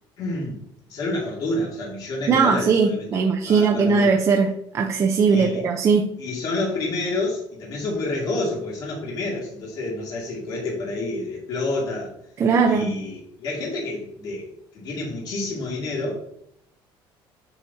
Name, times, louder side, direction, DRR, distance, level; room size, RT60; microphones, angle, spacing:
voice 1, 0.2-0.6 0.9-4.1 5.3-5.6 6.2-12.1 12.7-16.2, left 2 dB, 45° left, -3 dB, 2.2 m, -29 dB
voice 2, 2.3-6.1 12.4-13.0, right 5 dB, 30° right, 2 dB, 0.7 m, -19 dB
7.8 x 6.2 x 2.8 m, 0.72 s
cardioid pair, 165°, 10 cm